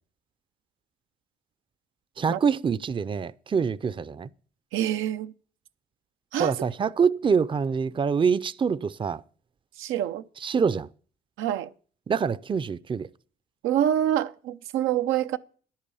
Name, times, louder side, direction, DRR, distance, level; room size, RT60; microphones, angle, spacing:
voice 1, 2.2-4.3 6.4-9.2 10.4-10.9 12.1-13.1, right 6 dB, 25° right, 0.5 m, -25 dB
voice 2, 4.7-5.3 6.3-6.5 9.8-10.2 11.4-11.7 13.6-15.4, right 11 dB, 90° right, 0.6 m, -26 dB
10.5 x 8.6 x 7.0 m
cardioid pair, 90°, 20 cm